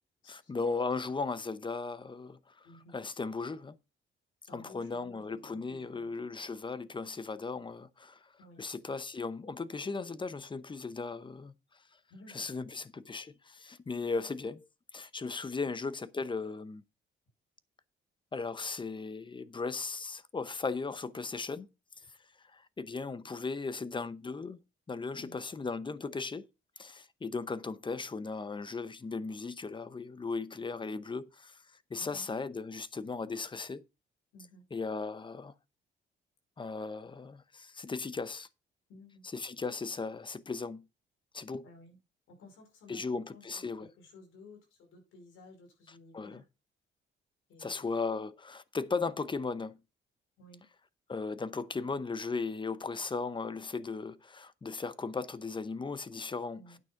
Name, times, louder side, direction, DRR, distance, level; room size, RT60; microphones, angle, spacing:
voice 1, 0.3-2.7 2.9-3.8 4.5-8.3 8.6-11.5 12.3-14.7 14.9-16.8 18.3-21.7 22.1-22.2 22.4-24.6 24.9-26.5 26.8-31.6 31.9-33.8 34.7-35.5 36.6-38.5 39.3-40.8 41.3-41.6 42.9-43.9 46.1-46.4 47.6-49.8 51.1-56.6, left 4 dB, 25° left, 0.8 m, -37 dB
voice 2, 2.6-3.0 4.4-6.1 8.4-8.6 12.1-12.8 25.1-25.4 32.0-32.3 34.3-34.6 38.9-39.3 41.6-42.0 42.3-46.4 47.5-48.0 50.4-50.7 56.5-56.8, left 2 dB, 85° left, 5.0 m, -55 dB
9.3 x 6.0 x 5.8 m
cardioid pair, 90°, 20 cm